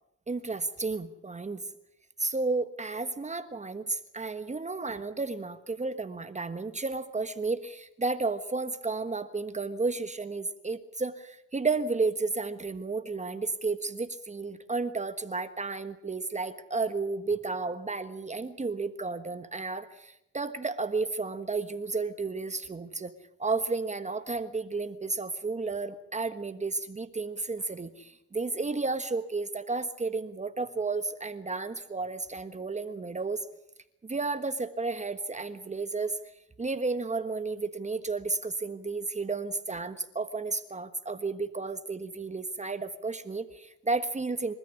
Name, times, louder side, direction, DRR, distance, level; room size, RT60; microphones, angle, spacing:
voice 1, 0.3-1.6 2.2-23.1 23.4-33.4 34.0-36.2 36.6-44.5, right 3 dB, 25° right, 10 dB, 1.4 m, -32 dB
28.0 x 13.5 x 9.6 m, 0.84 s
cardioid pair, 90°, 30 cm